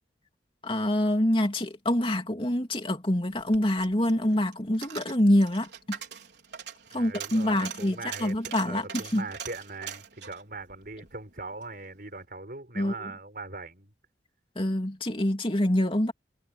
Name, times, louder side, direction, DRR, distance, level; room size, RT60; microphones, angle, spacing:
voice 1, 0.6-6.0 6.9-8.8 9.1-9.2 12.7-13.1 14.5-16.1, left 1 dB, 30° left, 3.0 m, -26 dB
Coin (dropping), 3.3-11.7 12.1-12.2, right 8 dB, 75° right, 4.6 m, -43 dB
voice 2, 6.9-13.9, right 3 dB, 55° right, 5.6 m, -40 dB
head